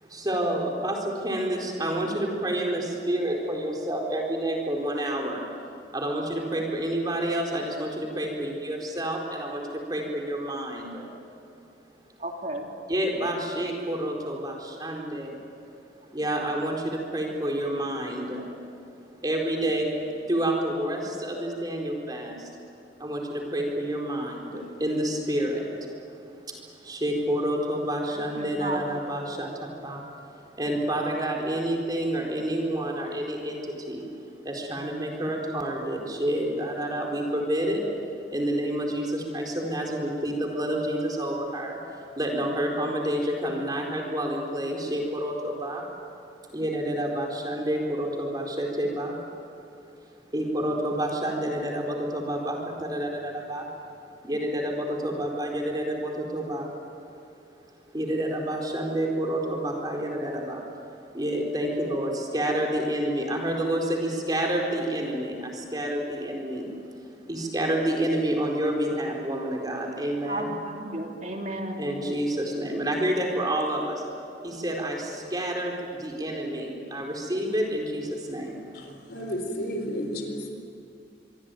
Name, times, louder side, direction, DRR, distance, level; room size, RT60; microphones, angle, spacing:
voice 1, 0.0-5.4 5.9-11.1 12.9-15.4 16.1-18.5 19.2-22.5 23.0-25.9 26.5-30.0 30.6-34.0 34.4-37.8 38.3-41.8 42.1-45.8 46.5-49.2 50.3-53.7 54.2-56.7 57.9-60.6 61.1-66.7 67.3-70.5 71.8-74.0 74.4-78.6, right 1 dB, 20° right, 0 dB, 4.4 m, -29 dB
voice 2, 12.2-12.6 28.4-28.8 70.3-71.8, right 1 dB, 40° right, 1 dB, 3.2 m, -33 dB
voice 3, 78.7-80.5, equal, 60° left, 4 dB, 4.2 m, -32 dB
25.0 x 23.5 x 9.3 m, 2.5 s
head